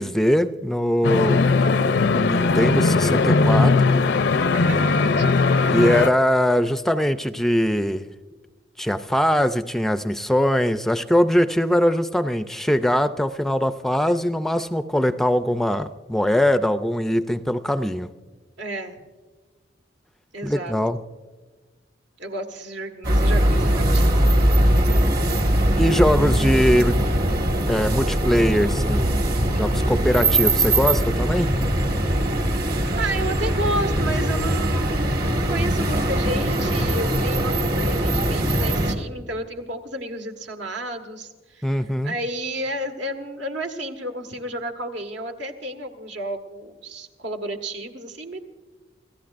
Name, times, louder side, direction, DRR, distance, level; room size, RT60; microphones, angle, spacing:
voice 1, 0.0-1.4 2.1-4.0 5.7-8.1 8.8-18.1 20.4-21.0 25.8-27.0 27.7-29.1 29.6-31.5 41.6-42.2, equal, ahead, 10 dB, 0.4 m, -21 dB
sound 1, 1.0-6.1, left 3 dB, 65° left, 0.5 m, -19 dB
voice 2, 4.8-5.5 5.8-6.0 18.6-19.0 20.3-20.8 22.2-24.2 32.8-48.4, right 1 dB, 80° right, 5 dB, 1.6 m, -32 dB
sound 2, 23.0-39.0, right 1 dB, 55° right, 1.9 m, -21 dB
28.0 x 14.5 x 2.5 m, 1.4 s
head